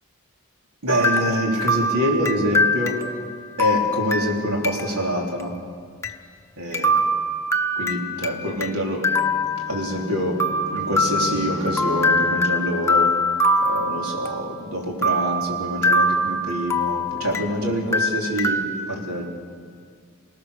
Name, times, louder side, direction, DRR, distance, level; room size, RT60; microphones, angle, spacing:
voice 1, 0.8-3.0 3.6-5.5 6.6-6.9 7.8-9.1 9.7-10.4 10.7-13.1 13.6-18.6 18.9-19.2, equal, 85° right, -1 dB, 4.1 m, -25 dB
sound 1, 0.9-5.1 5.4-5.5 6.0-6.1 6.7-8.7 9.0-10.1 10.4-14.6 15.0-17.6 17.9-18.6, left 1 dB, 10° left, 0.7 m, -23 dB
Bowed string instrument, 8.9-12.7, right 1 dB, 65° right, 1.7 m, -37 dB
27.5 x 18.5 x 6.8 m, 2.1 s
head